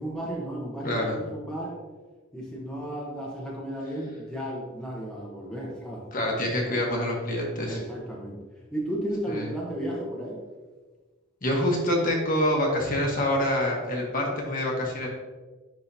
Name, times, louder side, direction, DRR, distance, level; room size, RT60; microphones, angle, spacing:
voice 1, 0.0-1.8 2.3-6.0 7.6-8.4 8.7-10.4, right 1 dB, 5° left, -5 dB, 0.9 m, -34 dB
voice 2, 0.8-1.1 6.1-7.8 9.3-9.5 11.4-15.1, left 1 dB, 40° left, -1 dB, 1.2 m, -26 dB
9.8 x 3.7 x 2.7 m, 1.3 s
head